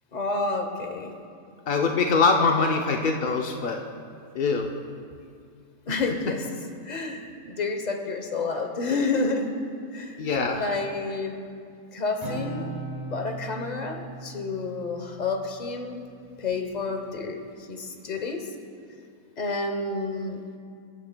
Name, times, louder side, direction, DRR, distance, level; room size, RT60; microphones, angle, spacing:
voice 1, 0.1-1.2 5.9-6.5 6.8-9.6 9.9-10.2 10.6-11.4 11.9-12.7 13.1-16.1 16.4-17.4 17.7-18.5 19.4-20.4, left 3 dB, 35° left, 4 dB, 0.8 m, -29 dB
voice 2, 1.7-3.8 4.3-4.7 5.9-6.0 10.2-10.6, left 4 dB, 80° left, 2 dB, 0.4 m, -23 dB
Acoustic guitar, 12.2-15.9, right 2 dB, 30° right, 1.1 m, -38 dB
22.5 x 8.4 x 2.2 m, 2.4 s
omnidirectional pair, 1.6 m